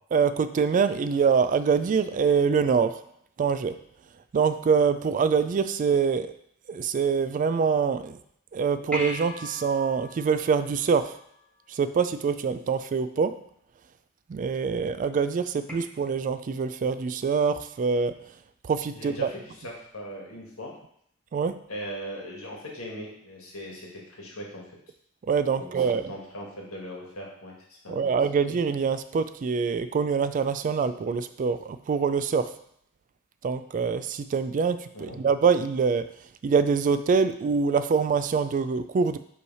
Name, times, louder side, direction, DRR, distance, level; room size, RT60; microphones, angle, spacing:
voice 1, 0.1-3.0 3.4-3.8 4.3-6.3 6.7-8.2 8.5-11.1 11.8-13.3 14.3-18.1 18.7-19.3 21.3-21.6 25.3-26.1 27.9-32.5 33.4-36.1 36.4-39.2, right 5 dB, 40° right, 12 dB, 0.3 m, -24 dB
sound 1, 8.9-11.6 15.7-15.8, left 1 dB, 5° left, 1.2 m, -38 dB
voice 2, 18.9-20.8 21.7-24.6 25.6-28.4 34.9-35.2, equal, 90° left, -2 dB, 1.8 m, -40 dB
5.4 x 3.2 x 5.5 m, 0.70 s
head